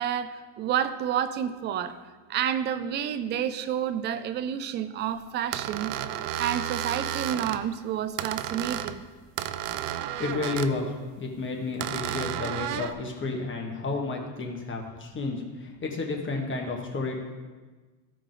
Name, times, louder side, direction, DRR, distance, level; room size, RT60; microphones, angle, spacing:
voice 1, 0.0-5.9 6.4-9.0, right 9 dB, 25° right, 12 dB, 0.3 m, -30 dB
sound 1, 5.5-7.6 8.2-9.0 9.4-10.7 11.8-12.9, right 11 dB, 70° right, 0.7 m, -32 dB
voice 2, 10.2-10.9 11.2-17.2, left 3 dB, 25° left, 1 dB, 1.6 m, -31 dB
15.0 x 5.0 x 3.9 m, 1.3 s
supercardioid pair, 110°, 49 cm